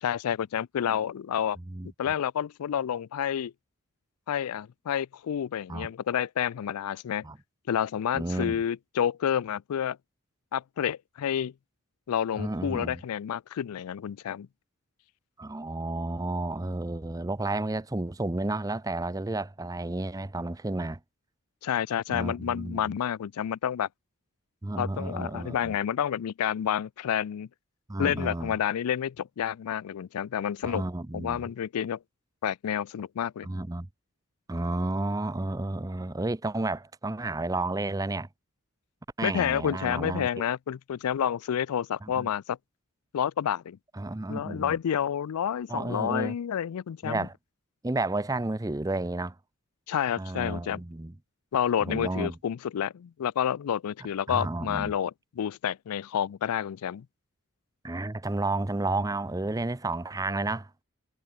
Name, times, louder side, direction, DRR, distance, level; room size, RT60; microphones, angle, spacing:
voice 1, 0.0-1.6 2.0-3.5 4.3-7.2 7.7-10.0 10.5-11.5 12.1-14.5 21.6-23.9 24.8-27.5 28.0-30.9 31.1-32.0 32.4-33.5 39.2-42.6 43.1-43.8 44.3-47.3 49.9-50.8 51.5-57.1, left 9 dB, 85° left, 0.4 m, -29 dB
voice 2, 1.7-2.1 5.7-5.9 7.2-7.4 8.1-8.6 12.4-13.0 15.4-21.0 22.1-22.9 24.6-25.7 27.9-28.5 30.6-31.4 33.4-33.9 34.5-38.3 39.2-40.5 42.0-42.3 43.9-44.8 45.7-46.3 47.0-47.3 47.8-49.3 50.2-51.1 51.8-52.4 54.3-54.9 57.8-60.7, right 2 dB, 15° right, 0.5 m, -31 dB
head